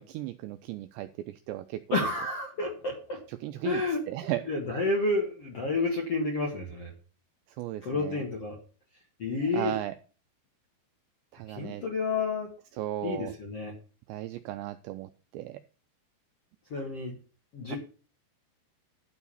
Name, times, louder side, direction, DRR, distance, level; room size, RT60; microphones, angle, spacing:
voice 1, 0.0-2.1 3.3-4.4 7.6-8.2 9.4-9.9 11.3-11.8 12.8-13.3 14.1-15.6 17.7-17.8, right 14 dB, 85° right, 9 dB, 2.5 m, -36 dB
voice 2, 1.9-3.2 3.6-4.0 4.5-6.9 7.8-8.5 9.2-9.7 11.5-12.5 13.0-13.7 16.7-17.1 17.5-17.8, left 3 dB, 60° left, 0 dB, 1.6 m, -30 dB
12.0 x 4.8 x 7.0 m, 0.37 s
omnidirectional pair, 5.6 m